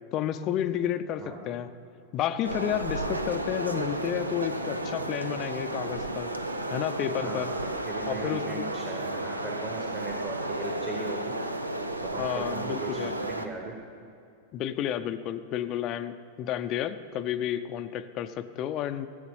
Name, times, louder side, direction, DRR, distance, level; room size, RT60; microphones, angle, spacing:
voice 1, 0.1-1.7 2.1-6.3 6.7-7.5 8.1-8.7 12.2-13.1 14.5-19.1, left 10 dB, 35° left, 11 dB, 0.6 m, -31 dB
sound 1, 2.4-13.5, right 1 dB, 85° right, 0.7 m, -33 dB
voice 2, 7.2-11.4 12.0-13.8, right 3 dB, 20° right, -1 dB, 1.3 m, -38 dB
16.0 x 8.0 x 5.5 m, 2.6 s
figure-of-eight pair, 90°, 0 cm